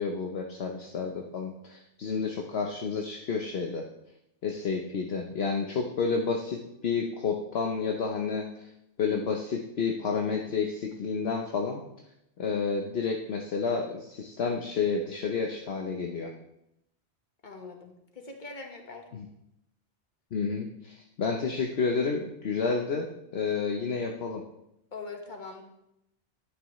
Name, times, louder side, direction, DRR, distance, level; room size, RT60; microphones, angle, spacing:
voice 1, 0.0-3.9 4.4-8.7 9.0-11.8 12.4-16.3 19.1-19.3 20.3-23.1 23.3-24.4, left 5 dB, 65° left, 2 dB, 1.1 m, -30 dB
voice 2, 17.4-19.1 24.9-25.6, left 3 dB, 40° left, 2 dB, 1.5 m, -42 dB
11.5 x 9.4 x 3.1 m, 0.82 s
omnidirectional pair, 1.2 m